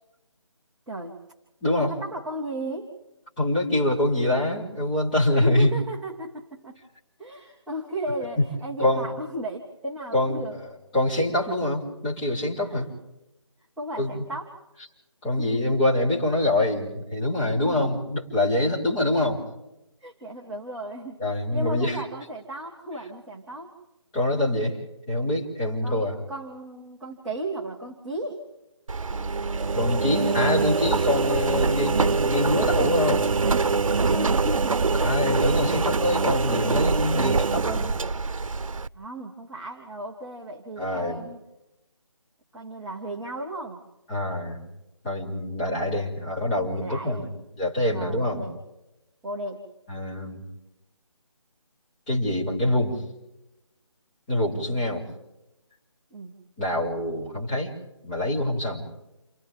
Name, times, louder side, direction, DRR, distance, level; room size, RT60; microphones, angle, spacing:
voice 1, 0.9-1.2 1.7-2.9 5.4-6.8 7.2-10.6 12.6-12.9 13.8-14.6 15.4-15.6 17.6-18.0 20.0-23.8 25.8-28.5 33.9-34.9 38.9-41.4 42.5-43.8 45.6-46.1 46.8-47.3 47.9-48.6 49.2-49.6 56.1-56.4, right 1 dB, ahead, -7 dB, 0.9 m, -35 dB
voice 2, 1.6-1.9 3.4-5.7 8.4-8.5 8.8-9.0 10.1-10.7 10.9-12.9 14.0-14.2 15.2-19.4 21.2-22.0 24.1-24.8 25.1-26.2 29.7-33.3 34.9-37.9 40.8-41.2 44.1-44.6 45.0-47.3 47.6-48.4 49.9-50.4 52.1-53.0 54.3-55.1 56.6-57.7 58.0-58.9, left 1 dB, 15° left, -7 dB, 5.0 m, -25 dB
Engine, 28.9-38.9, right 4 dB, 90° right, 0.7 m, -24 dB
30.0 x 29.5 x 3.6 m, 0.96 s
figure-of-eight pair, 170°, 17 cm